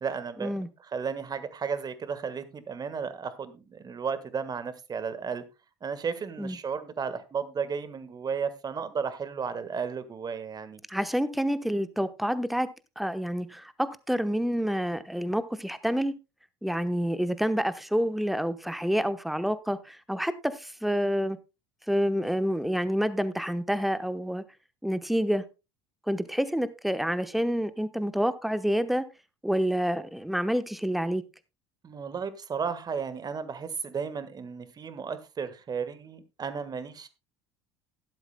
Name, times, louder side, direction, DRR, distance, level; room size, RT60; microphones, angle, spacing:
voice 1, 0.0-0.5 0.9-5.4 5.8-10.8 31.8-37.1, right 6 dB, 30° right, 13 dB, 1.5 m, -34 dB
voice 2, 10.9-12.7 13.0-16.1 16.6-21.4 21.9-24.4 24.8-25.4 26.1-29.0 29.4-31.2, equal, ahead, 13 dB, 1.0 m, -28 dB
15.0 x 11.5 x 2.2 m, 0.27 s
figure-of-eight pair, 70°, 14 cm